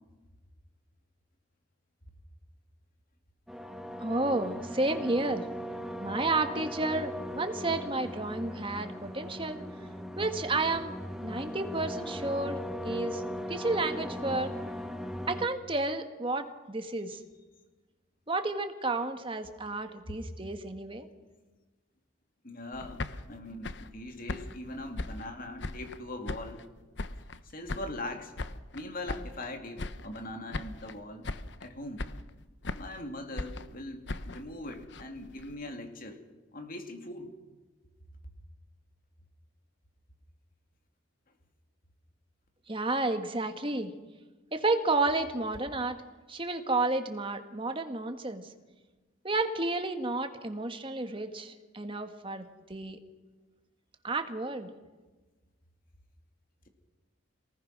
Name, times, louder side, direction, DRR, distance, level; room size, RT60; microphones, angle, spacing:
sound 1, 3.5-15.5, equal, ahead, 1.2 m, -39 dB
voice 1, 4.0-5.4 6.0-9.6 10.2-10.9 11.2-12.6 12.8-13.2 13.5-14.5 15.3-17.2 18.3-21.1 42.7-43.9 44.5-46.0 46.3-48.5 49.2-53.0 54.0-54.7, right 2 dB, 25° right, 7 dB, 1.7 m, -31 dB
voice 2, 22.4-26.6 27.4-28.3 28.7-31.2 31.6-32.0 32.7-36.2 36.5-37.4, left 1 dB, 45° left, 5 dB, 2.8 m, -41 dB
sound 2, 22.7-26.0 26.3-27.4 27.7-29.5 29.8-30.3 30.5-31.0 31.2-31.7 32.0-33.0 33.4-35.6, left 2 dB, 60° left, 0.9 m, -39 dB
27.0 x 19.5 x 6.1 m, 1.2 s
head